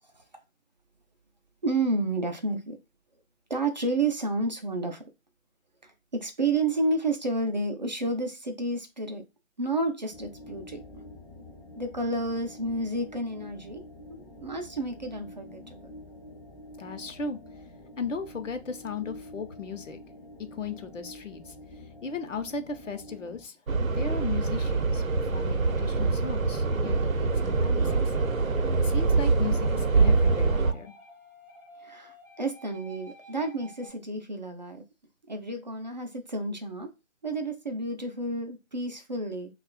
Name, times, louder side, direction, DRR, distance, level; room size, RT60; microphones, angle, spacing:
voice 1, 1.6-2.8 3.5-5.0 5.8-9.2 9.6-10.8 11.8-15.9 31.8-34.8 35.3-36.9 37.2-39.5, right 2 dB, 35° right, 0.5 m, -31 dB
sound 1, 10.1-23.5, left 1 dB, 25° left, 0.6 m, -47 dB
voice 2, 16.8-17.4 18.0-20.0 20.5-21.5 22.0-23.6 23.9-28.1 28.8-30.9, left 4 dB, 65° left, 1.0 m, -36 dB
sound 2, 23.7-30.7, right 4 dB, 80° right, 0.8 m, -24 dB
sound 3, 27.8-33.9, left 1 dB, 5° left, 1.5 m, -51 dB
6.1 x 2.4 x 2.2 m
figure-of-eight pair, 150°, 40 cm